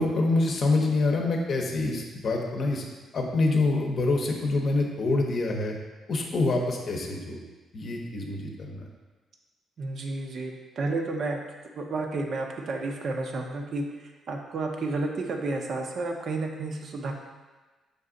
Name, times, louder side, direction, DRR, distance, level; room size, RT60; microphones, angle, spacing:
voice 1, 0.0-2.8 3.1-5.7 6.1-7.4 7.7-8.9, left 2 dB, 55° left, 1 dB, 0.7 m, -26 dB
voice 2, 9.8-11.4 11.7-17.1, right 3 dB, 55° right, 2 dB, 0.6 m, -31 dB
5.2 x 2.4 x 3.8 m, 1.3 s
cardioid pair, 90°, 0 cm